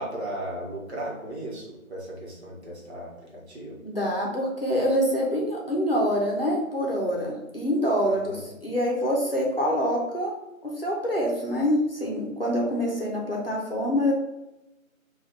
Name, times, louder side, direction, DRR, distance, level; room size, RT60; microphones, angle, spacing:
voice 1, 0.0-3.8 8.0-8.4, right 1 dB, 50° right, -4 dB, 1.1 m, -36 dB
voice 2, 3.8-10.3 10.6-14.1, equal, 45° left, -3 dB, 0.7 m, -26 dB
3.1 x 2.4 x 3.9 m, 0.97 s
figure-of-eight pair, 180°, 42 cm